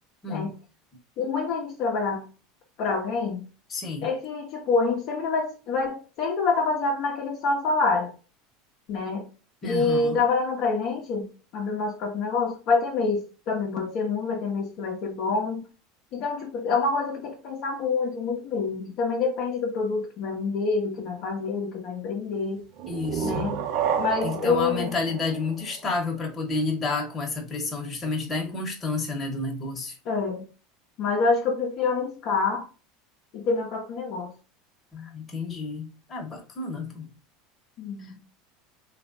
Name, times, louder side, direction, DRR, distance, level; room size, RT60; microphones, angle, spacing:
voice 1, 1.2-2.2 2.8-3.4 4.0-8.1 8.9-9.3 9.6-11.3 11.5-15.6 16.1-22.6 23.2-23.6 24.0-24.9 30.1-30.4 31.0-32.7 33.3-34.3 37.8-38.2, left 4 dB, 55° left, 0.8 m, -26 dB
voice 2, 3.7-4.1 9.6-10.2 22.9-23.5 24.2-30.0 34.9-37.1 38.0-38.1, left 3 dB, 30° left, 1.1 m, -30 dB
sound 1, 22.8-26.3, right 7 dB, 60° right, 0.5 m, -30 dB
3.2 x 2.5 x 2.5 m
supercardioid pair, 115°, 0 cm